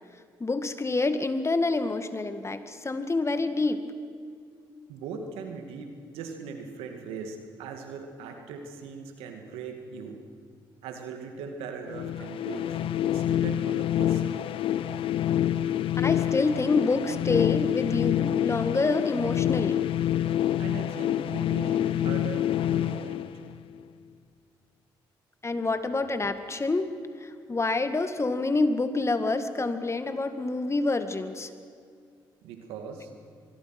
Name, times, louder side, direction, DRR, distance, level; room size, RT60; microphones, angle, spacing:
voice 1, 0.4-3.8 16.0-19.8 25.4-26.9 27.2-31.5, left 3 dB, 30° left, 9 dB, 1.9 m, -27 dB
voice 2, 4.9-10.2 10.8-14.4 20.6-23.2 32.4-33.1, right 5 dB, 85° right, 5 dB, 2.3 m, -40 dB
sound 1, 11.9-23.8, left 11 dB, 70° left, 0.7 m, -27 dB
24.5 x 21.5 x 6.1 m, 2.2 s
supercardioid pair, 55°, 10 cm